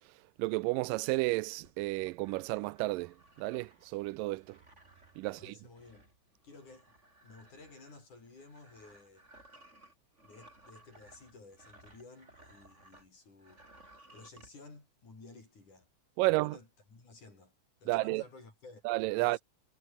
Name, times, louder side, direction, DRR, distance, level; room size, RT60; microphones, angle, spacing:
voice 1, 0.4-3.1 3.4-4.4 5.2-5.4 16.2-16.5 17.9-18.2 18.9-19.4, right 21 dB, 85° right, 2.2 m, -31 dB
sound 1, 1.6-13.1 13.4-14.5, right 1 dB, 20° right, 7.1 m, -60 dB
voice 2, 5.2-6.1 6.4-7.0 7.2-9.3 10.2-13.6 14.1-15.9 16.2-17.5 17.8-18.8 19.2-19.4, left 3 dB, 65° left, 9.0 m, -54 dB
omnidirectional pair, 3.8 m